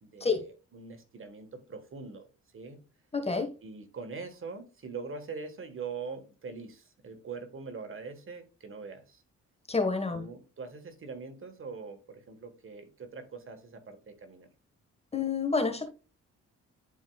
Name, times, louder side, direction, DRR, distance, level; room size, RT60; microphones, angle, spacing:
voice 1, 0.0-2.3 2.5-2.8 3.6-9.2 10.1-14.5, right 4 dB, 45° right, 1.5 m, -43 dB
voice 2, 3.1-3.5 9.7-10.3 15.1-15.9, left 4 dB, 20° left, 1.4 m, -28 dB
11.0 x 4.5 x 2.3 m
cardioid pair, 90°, 30 cm